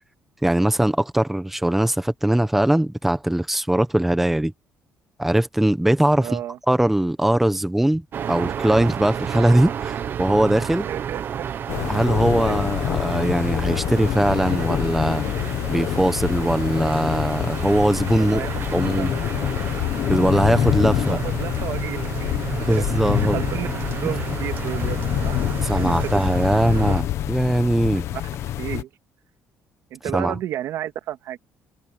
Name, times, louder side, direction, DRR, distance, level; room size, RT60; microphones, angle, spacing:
voice 1, 0.4-4.5 5.2-6.3 6.7-8.0 8.3-10.9 11.9-15.2 15.7-19.1 20.0-21.2 22.7-23.4 25.6-28.0 30.1-30.3, right 1 dB, 5° right, 1.0 m, -21 dB
voice 2, 6.2-6.6 10.8-11.5 12.4-12.6 18.2-18.6 19.0-19.1 20.9-23.7 24.0-25.0 25.2-25.4 25.7-26.2 26.8-26.9 28.1-28.2 28.6-28.9 29.9-31.4, right 12 dB, 70° right, 2.1 m, -32 dB
sound 1, 8.1-27.0, right 8 dB, 45° right, 1.1 m, -31 dB
sound 2, 11.7-28.8, left 12 dB, 60° left, 1.3 m, -26 dB
cardioid pair, 155°, 5 cm